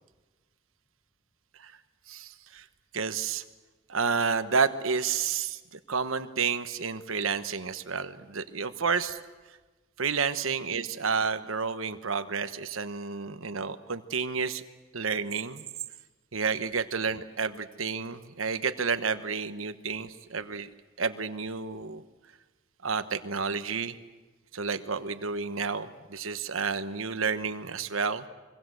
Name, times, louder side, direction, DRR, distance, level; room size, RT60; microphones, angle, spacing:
voice 1, 2.1-2.6 2.9-3.4 3.9-9.2 10.0-14.6 14.9-15.6 16.3-20.7 21.0-22.0 22.8-24.0 24.5-28.2, right 5 dB, 80° right, 10 dB, 1.2 m, -30 dB
25.0 x 23.5 x 7.8 m, 1.2 s
head